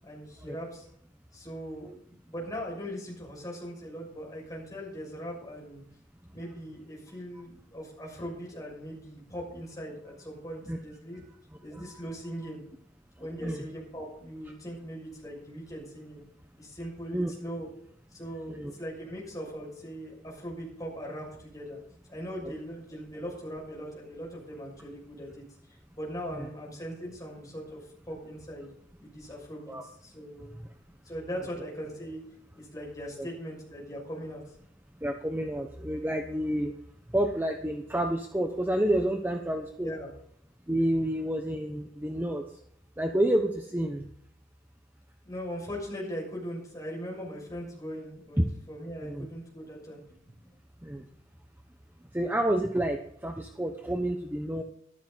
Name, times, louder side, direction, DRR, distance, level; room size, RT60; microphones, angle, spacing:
voice 1, 0.0-0.9 1.3-5.8 6.3-11.2 11.6-12.6 13.2-16.2 16.6-17.7 18.1-21.8 22.1-25.4 25.9-27.8 28.1-28.7 29.0-30.5 31.0-32.2 32.5-34.4 39.8-40.1 45.2-48.4 48.7-50.0, equal, 20° left, -3 dB, 6.4 m, -40 dB
voice 2, 35.0-36.7 37.1-39.9 40.7-42.4 43.0-44.1 48.4-48.5 49.0-49.3 50.8-51.0 52.1-54.6, right 1 dB, 10° right, 3 dB, 0.9 m, -29 dB
13.5 x 12.5 x 4.1 m, 0.68 s
head